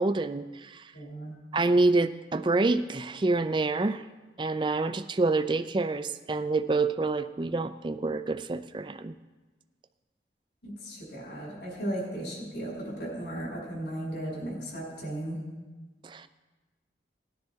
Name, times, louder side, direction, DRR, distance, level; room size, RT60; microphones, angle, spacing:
voice 1, 0.0-0.9 1.5-4.0 4.4-9.1 16.0-16.3, right 3 dB, 25° right, 12 dB, 0.4 m, -27 dB
voice 2, 0.9-1.3 10.6-15.4, right 1 dB, 80° left, -3 dB, 5.2 m, -36 dB
18.5 x 10.5 x 3.5 m, 1.2 s
head